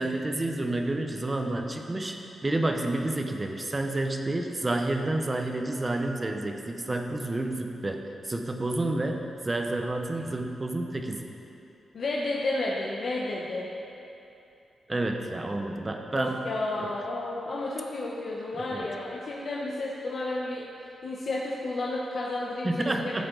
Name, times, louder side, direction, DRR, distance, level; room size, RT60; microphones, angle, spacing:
voice 1, 0.0-11.3 14.9-16.4 16.8-16.9 18.6-18.9 22.6-23.3, right 2 dB, 20° right, 4 dB, 0.8 m, -30 dB
voice 2, 11.9-13.7 16.1-20.6 21.0-23.3, left 2 dB, 50° left, -4 dB, 1.0 m, -32 dB
14.5 x 8.5 x 3.9 m, 2.8 s
wide cardioid pair, 150°, 0 cm